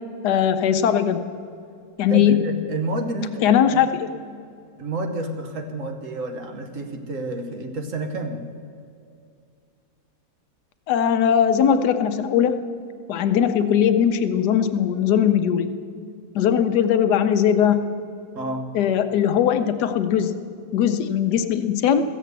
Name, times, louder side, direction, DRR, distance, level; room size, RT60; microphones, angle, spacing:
voice 1, 0.2-1.2 2.0-2.4 3.4-3.9 10.9-12.5 13.1-15.7 16.3-17.9 18.7-20.3 20.7-22.0, left 9 dB, 75° left, 9 dB, 1.2 m, -19 dB
voice 2, 2.1-3.6 4.8-8.5 18.3-18.7, right 2 dB, 55° right, 5 dB, 1.3 m, -29 dB
14.5 x 7.5 x 8.0 m, 2.4 s
omnidirectional pair, 1.8 m